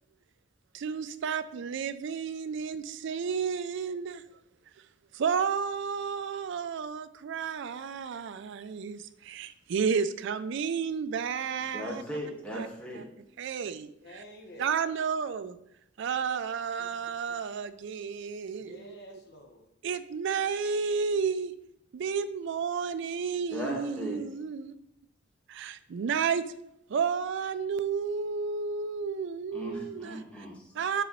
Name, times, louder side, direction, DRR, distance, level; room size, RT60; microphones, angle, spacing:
voice 1, 0.7-4.2 5.1-12.0 12.5-12.7 13.4-14.2 14.6-15.6 16.0-19.0 19.8-21.5 21.9-24.7 25.5-26.4 26.9-30.2 30.7-31.0, right 6 dB, 65° right, 0.4 m, -32 dB
voice 2, 11.7-13.0 23.5-24.2 29.5-30.8, equal, 5° left, 1.4 m, -37 dB
voice 3, 14.0-14.7 16.8-17.4 18.6-19.7, equal, 55° left, 1.0 m, -50 dB
9.2 x 3.8 x 3.1 m
head